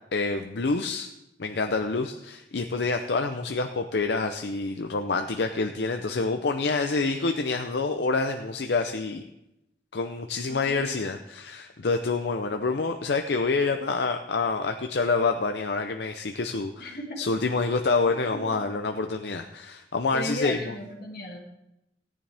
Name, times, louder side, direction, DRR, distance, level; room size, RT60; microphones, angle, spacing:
voice 1, 0.1-1.1 1.4-9.2 9.9-20.7, left 3 dB, 75° left, 5 dB, 0.6 m, -27 dB
voice 2, 10.5-10.9 16.8-17.3 18.1-18.7 20.1-21.4, equal, 55° left, 0 dB, 2.2 m, -36 dB
17.0 x 9.9 x 3.4 m, 0.89 s
head